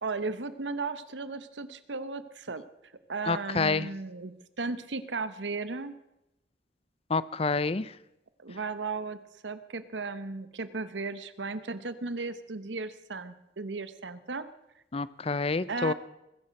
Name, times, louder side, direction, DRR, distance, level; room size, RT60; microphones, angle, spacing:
voice 1, 0.0-2.6 3.1-6.0 8.4-14.5 15.7-15.9, right 3 dB, 80° right, 13 dB, 1.0 m, -35 dB
voice 2, 3.3-3.9 7.1-7.9 14.9-15.9, left 4 dB, 35° left, 18 dB, 0.5 m, -28 dB
21.5 x 10.0 x 6.5 m, 0.89 s
head